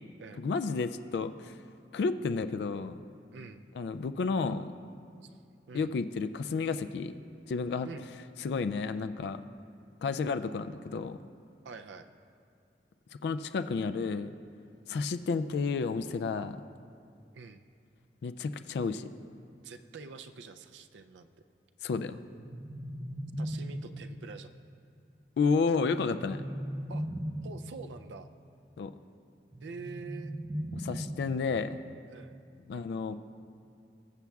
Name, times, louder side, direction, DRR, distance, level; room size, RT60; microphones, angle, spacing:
voice 1, 0.4-1.5 1.9-3.0 3.8-4.7 5.7-7.1 7.5-7.9 8.4-9.4 10.0-11.2 13.2-14.3 14.9-16.6 18.2-19.1 21.8-22.2 25.4-26.4 28.8-28.9 30.7-31.8 32.7-33.1, left 4 dB, 65° left, 11 dB, 0.3 m, -31 dB
voice 2, 3.3-3.6 5.2-5.4 5.7-5.9 7.8-8.1 11.6-12.1 17.3-17.6 19.6-21.3 23.4-24.5 26.9-27.1 27.4-28.3 29.6-30.3 32.1-32.4, right 4 dB, 85° right, 8 dB, 0.4 m, -46 dB
sound 1, 22.1-24.1 25.8-27.7 29.5-31.5, equal, 25° right, 0.6 m, -38 dB
20.0 x 7.0 x 2.3 m, 2.3 s
head